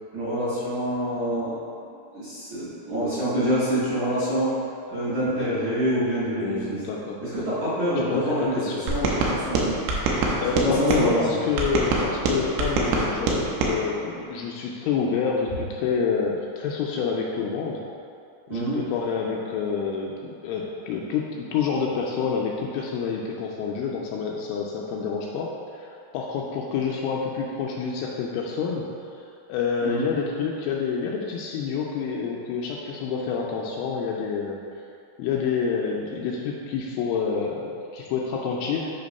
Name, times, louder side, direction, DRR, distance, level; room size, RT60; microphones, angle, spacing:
voice 1, 0.1-1.6 2.1-4.6 4.9-6.8 7.2-8.6 8.9-9.7 10.6-11.4 18.5-18.8 29.8-30.1, equal, 55° right, -14 dB, 2.1 m, -26 dB
voice 2, 6.4-7.2 8.0-8.8 10.4-17.8 18.5-28.9 29.2-34.6 35.2-38.9, left 5 dB, 85° left, -2 dB, 2.8 m, -28 dB
sound 1, 8.9-11.1 11.6-13.7, right 3 dB, 80° right, 2.5 m, -24 dB
8.7 x 2.9 x 5.2 m, 2.5 s
omnidirectional pair, 5.8 m